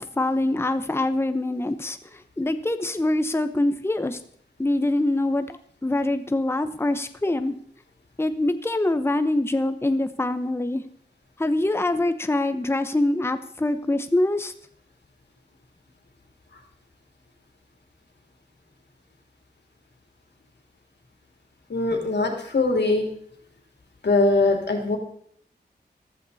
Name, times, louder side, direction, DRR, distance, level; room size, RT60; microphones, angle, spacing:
voice 1, 0.0-4.2 4.6-7.5 8.2-10.8 11.4-14.5, left 2 dB, 15° left, 10 dB, 0.8 m, -24 dB
voice 2, 21.7-23.1 24.0-25.0, left 2 dB, 85° left, 3 dB, 2.9 m, -21 dB
14.5 x 13.5 x 4.1 m, 0.63 s
wide cardioid pair, 100°, 17 cm